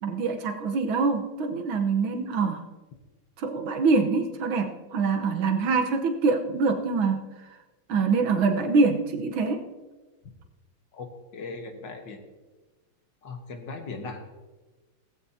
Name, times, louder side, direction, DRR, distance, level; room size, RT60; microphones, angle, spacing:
voice 1, 0.0-2.7 3.4-7.3 7.9-9.7, right 4 dB, 75° right, 5 dB, 1.8 m, -25 dB
voice 2, 10.9-12.2 13.2-14.2, left 3 dB, 65° left, 5 dB, 1.9 m, -38 dB
17.5 x 15.5 x 2.8 m, 1.2 s
omnidirectional pair, 2.3 m